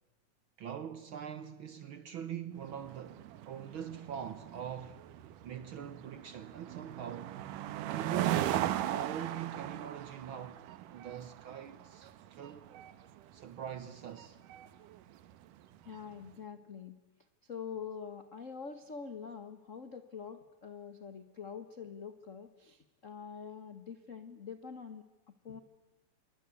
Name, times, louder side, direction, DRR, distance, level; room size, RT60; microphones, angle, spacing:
voice 1, 0.6-5.0 5.4-7.3 7.8-10.6 10.9-12.7 13.3-14.4, right 9 dB, 70° right, 1.2 m, -42 dB
sound 1, 2.6-16.1, right 12 dB, 90° right, 2.6 m, -39 dB
voice 2, 15.8-17.0 17.4-25.6, left 6 dB, 75° left, 0.7 m, -45 dB
26.5 x 22.5 x 8.4 m
omnidirectional pair, 3.6 m